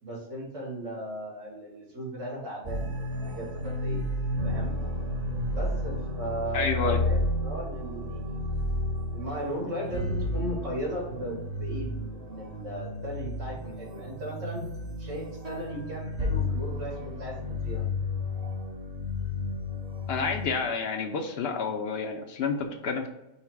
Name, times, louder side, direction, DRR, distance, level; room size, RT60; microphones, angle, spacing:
voice 1, 0.0-4.0 4.4-4.8 5.5-8.5 9.1-14.6 15.0-17.8, equal, 80° right, -4 dB, 2.3 m, -37 dB
sound 1, 2.6-20.5, left 1 dB, 40° right, 0.8 m, -32 dB
voice 2, 6.5-7.0 20.1-23.1, left 5 dB, 65° left, 5 dB, 0.7 m, -29 dB
5.5 x 2.1 x 4.5 m, 0.93 s
omnidirectional pair, 1.3 m